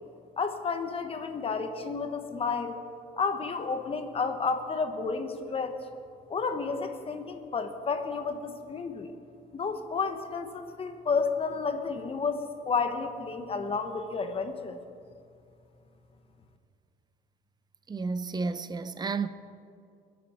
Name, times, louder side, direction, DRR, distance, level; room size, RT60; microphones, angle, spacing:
voice 1, 0.4-2.8 3.2-5.8 6.3-9.1 9.5-12.4 12.6-14.8, left 4 dB, 35° left, 1.3 m, -31 dB
voice 2, 17.9-19.3, right 4 dB, 25° right, 0.6 m, -31 dB
23.0 x 8.5 x 4.5 m
cardioid pair, 110°, 17 cm